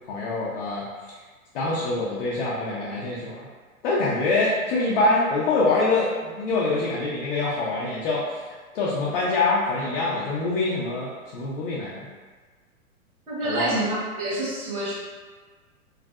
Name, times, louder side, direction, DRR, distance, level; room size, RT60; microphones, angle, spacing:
voice 1, 0.1-0.8 1.5-3.5 3.8-8.4 8.7-12.1 13.4-13.7, left 3 dB, 40° left, -6 dB, 0.6 m, -25 dB
voice 2, 13.3-14.9, right 1 dB, 75° right, -6 dB, 1.3 m, -27 dB
3.1 x 2.5 x 2.3 m, 1.4 s
figure-of-eight pair, 115°, 43 cm